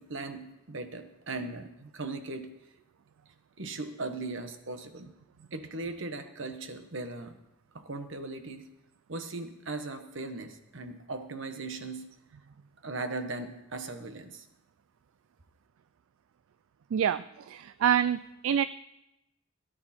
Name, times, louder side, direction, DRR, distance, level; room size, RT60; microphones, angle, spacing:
voice 1, 0.0-2.5 3.6-5.1 5.5-7.4 7.7-8.7 9.1-12.1 12.8-14.4, right 3 dB, 65° right, 8 dB, 1.3 m, -38 dB
voice 2, 16.9-18.6, right 9 dB, 80° right, 14 dB, 0.4 m, -27 dB
18.0 x 10.5 x 4.4 m, 0.91 s
head